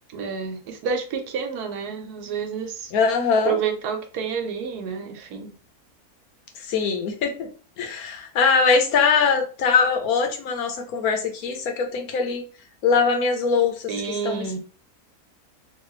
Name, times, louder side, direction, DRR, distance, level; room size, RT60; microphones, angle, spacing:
voice 1, 0.1-2.9 3.5-5.5 13.9-14.6, right 6 dB, 85° right, 5 dB, 1.2 m, -29 dB
voice 2, 2.9-3.6 6.6-7.5 7.8-12.4 12.8-13.9 14.2-14.6, left 5 dB, 75° left, 4 dB, 1.2 m, -22 dB
3.3 x 2.3 x 3.0 m, 0.38 s
omnidirectional pair, 1.6 m